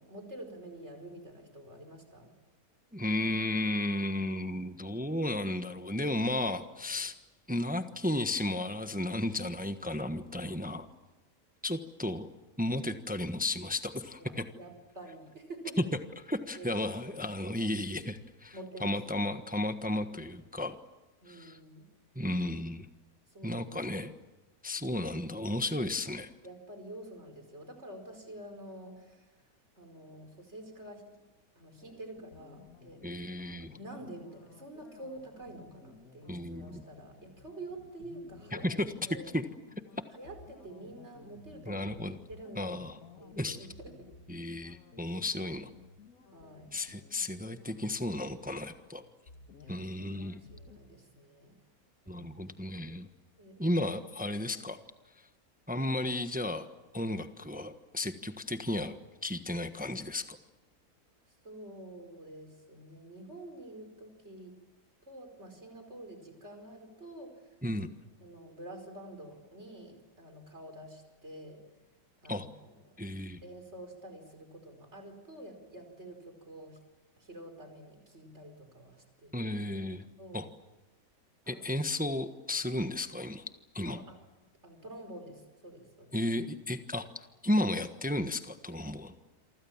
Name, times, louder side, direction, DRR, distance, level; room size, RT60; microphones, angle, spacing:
voice 1, 0.0-2.3 10.2-10.5 14.2-15.8 16.5-17.3 18.5-19.4 21.2-21.8 23.3-23.8 24.8-25.0 26.4-29.5 29.8-31.1 31.6-33.1 33.8-38.7 39.1-39.3 40.1-42.9 43.2-44.1 46.3-46.7 49.6-51.6 52.0-52.5 53.4-53.7 61.4-64.6 65.0-67.6 68.2-71.6 72.2-73.1 73.4-76.8 77.2-79.5 80.2-80.5 81.5-81.7 83.9-84.2 84.6-86.2, right 1 dB, 45° right, 6 dB, 5.2 m, -48 dB
voice 2, 2.9-7.1 7.5-10.9 11.6-12.3 12.6-14.4 16.3-20.8 21.3-21.6 22.1-22.9 23.4-24.1 24.6-26.3 33.0-33.8 36.3-36.8 38.5-38.9 39.3-39.4 41.6-42.2 42.6-43.0 43.4-43.6 44.3-45.7 46.7-49.0 49.7-50.4 52.1-53.1 53.6-54.8 55.2-55.3 55.7-56.7 56.9-60.4 67.6-67.9 72.3-72.5 73.0-73.4 79.3-80.0 80.3-80.5 81.5-83.5 83.7-84.0 86.1-89.1, left 1 dB, 5° right, 9 dB, 1.1 m, -33 dB
sound 1, 31.8-50.8, left 5 dB, 70° left, 2.2 m, -56 dB
28.0 x 24.5 x 7.3 m, 1.1 s
omnidirectional pair, 1.6 m